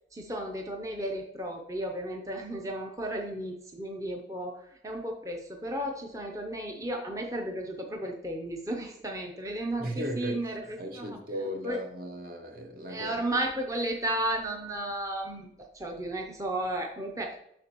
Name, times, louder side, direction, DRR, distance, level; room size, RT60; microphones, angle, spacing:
voice 1, 0.1-10.6 10.9-11.2 11.6-11.8 12.9-17.4, right 1 dB, 20° right, 0.6 m, -34 dB
voice 2, 9.8-13.2, equal, 50° right, 0.9 m, -37 dB
7.5 x 6.0 x 3.0 m
head